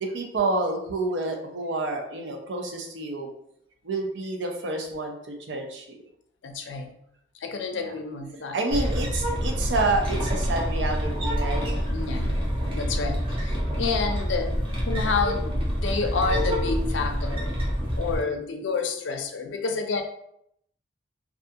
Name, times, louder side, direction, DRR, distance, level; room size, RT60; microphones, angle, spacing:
voice 1, 0.0-3.3 3.8-6.0 7.8-7.9 8.5-11.7, right 2 dB, 80° right, 2 dB, 0.5 m, -29 dB
voice 2, 6.4-6.9 7.4-8.6 11.9-12.3 12.7-14.5 14.9-17.5 18.0-20.0, left 4 dB, 90° left, 5 dB, 0.4 m, -29 dB
sound 1, 8.7-18.2, equal, 30° right, 0.7 m, -27 dB
2.4 x 2.3 x 2.6 m, 0.75 s
head